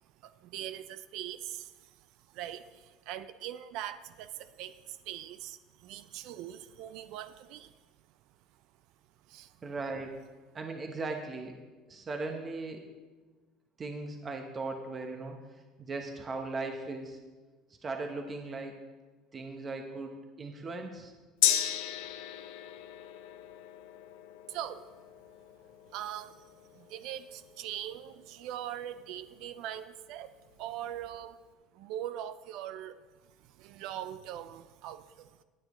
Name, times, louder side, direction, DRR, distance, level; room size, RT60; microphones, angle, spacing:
voice 1, 0.2-1.9 2.3-7.7 9.3-9.5 24.5-24.9 25.9-26.4 26.7-30.3 30.6-31.4 31.7-33.0 33.6-35.3, right 11 dB, 70° right, 13 dB, 0.4 m, -41 dB
voice 2, 9.6-10.1 10.5-11.5 11.9-12.8 13.8-15.4 15.8-17.2 17.8-18.7 19.3-21.1, right 3 dB, 30° right, 3 dB, 1.0 m, -38 dB
Gong, 21.4-29.2 29.5-29.6, left 12 dB, 90° left, 0.7 m, -36 dB
19.5 x 6.9 x 3.1 m, 1.3 s
supercardioid pair, 110°, 0 cm